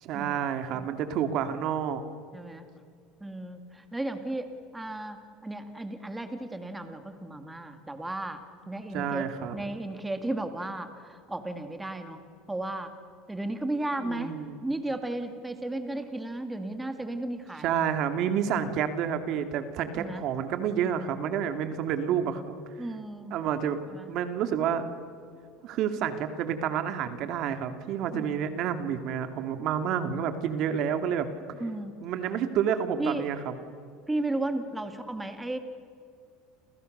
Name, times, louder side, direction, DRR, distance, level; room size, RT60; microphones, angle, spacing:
voice 1, 0.0-2.0 8.9-9.6 14.0-14.6 17.6-22.5 23.3-23.8 24.1-24.8 25.6-31.3 32.0-33.5, right 8 dB, 55° right, 8 dB, 2.6 m, -29 dB
voice 2, 2.3-2.7 3.2-12.2 12.5-12.9 13.3-14.3 14.6-17.8 19.9-20.3 22.8-23.3 23.9-24.1 28.1-28.6 31.6-31.9 33.0-33.3 34.1-35.6, right 2 dB, 10° right, 7 dB, 2.2 m, -34 dB
29.5 x 29.5 x 6.8 m, 2.3 s
cardioid pair, 135°, 0 cm